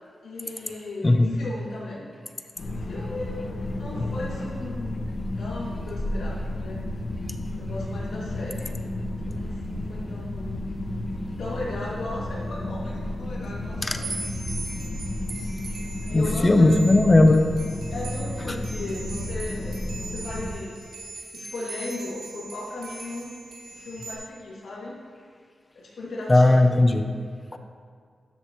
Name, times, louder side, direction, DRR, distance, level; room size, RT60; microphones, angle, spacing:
voice 1, 0.2-2.1 2.7-5.1 5.4-6.8 7.6-8.7 9.2-10.7 11.4-14.2 14.8-15.0 16.1-16.9 17.9-20.8 21.3-23.3 23.7-25.0 25.7-26.7, left 2 dB, 85° left, -6 dB, 2.5 m, -37 dB
voice 2, 1.0-1.4 13.8-14.0 16.1-17.4 18.4-18.5 26.3-27.1 27.5-27.6, left 2 dB, 25° left, 6 dB, 0.8 m, -17 dB
sound 1, 2.6-20.5, left 1 dB, 70° left, 1.3 m, -32 dB
sound 2, 14.0-24.1, right 3 dB, 80° right, 1.3 m, -40 dB
12.5 x 7.8 x 3.1 m, 2.1 s
cardioid pair, 75°, 0 cm